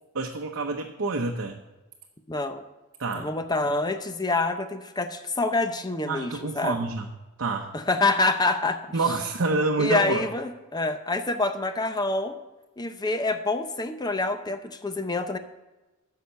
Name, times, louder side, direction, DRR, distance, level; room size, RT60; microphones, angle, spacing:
voice 1, 0.1-1.6 3.0-3.3 6.1-7.1 7.4-7.7 8.9-10.2, right 3 dB, 60° right, 2 dB, 0.8 m, -27 dB
voice 2, 2.3-2.6 3.2-6.8 7.7-8.8 9.8-12.4 12.8-15.4, left 2 dB, 20° left, 9 dB, 0.6 m, -26 dB
9.8 x 6.6 x 6.9 m, 1.1 s
head